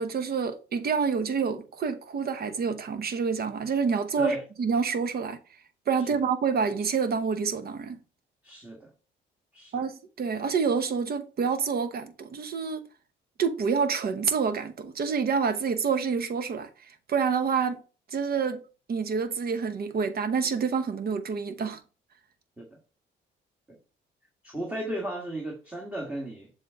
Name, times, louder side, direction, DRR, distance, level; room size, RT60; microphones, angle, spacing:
voice 1, 0.0-5.4 5.9-8.0 9.7-12.8 13.4-17.8 18.1-21.8, right 5 dB, 50° right, 1.0 m, -28 dB
voice 2, 8.4-8.9 9.5-9.8 22.6-22.8 23.7-23.8 24.4-26.5, right 1 dB, 10° right, 1.5 m, -34 dB
7.3 x 3.7 x 3.6 m
cardioid pair, 90°, 20 cm